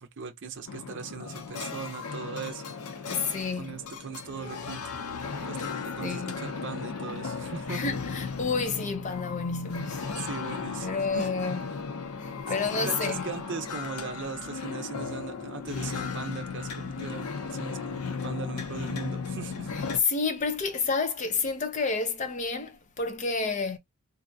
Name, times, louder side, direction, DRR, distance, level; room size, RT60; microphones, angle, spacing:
voice 1, 0.0-2.7 3.6-4.9 5.3-7.8 10.2-11.3 12.8-19.7, right 5 dB, 55° right, 0.6 m, -39 dB
sound 1, 0.7-20.0, left 5 dB, 90° left, 0.6 m, -36 dB
voice 2, 3.1-3.8 5.3-5.5 6.0-6.4 7.7-10.2 10.8-11.6 12.2-13.2 20.0-23.8, left 4 dB, 35° left, 0.6 m, -30 dB
3.4 x 2.6 x 2.7 m
head